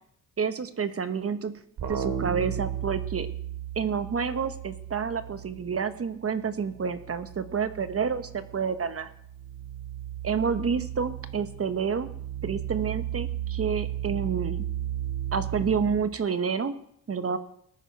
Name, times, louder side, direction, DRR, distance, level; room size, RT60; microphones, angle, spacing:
voice 1, 0.4-1.5 1.9-3.3 3.8-9.1 10.2-12.1 12.4-14.6 15.3-16.8 17.1-17.4, right 6 dB, 35° right, 11 dB, 1.0 m, -29 dB
sound 1, 1.8-6.1 6.4-16.0, right 10 dB, 75° right, 2.4 m, -35 dB
18.5 x 9.9 x 4.5 m, 0.69 s
cardioid pair, 105°, 40 cm